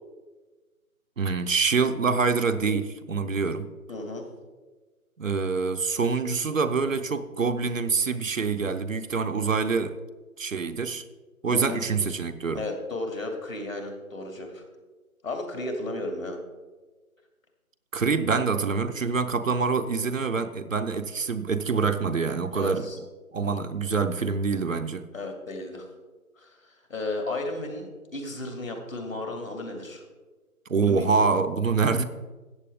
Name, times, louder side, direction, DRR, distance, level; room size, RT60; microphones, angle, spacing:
voice 1, 1.2-3.7 5.2-10.0 10.4-11.0 11.4-12.6 17.9-22.9 23.3-25.1 30.7-32.0, right 5 dB, 60° right, 10 dB, 0.8 m, -25 dB
voice 2, 3.9-4.2 11.5-11.8 12.5-14.6 15.2-16.4 22.5-23.0 25.1-25.9 26.4-30.0 30.8-31.1, left 2 dB, 65° left, 3 dB, 2.5 m, -34 dB
14.0 x 8.3 x 3.5 m, 1.3 s
figure-of-eight pair, 165°, 44 cm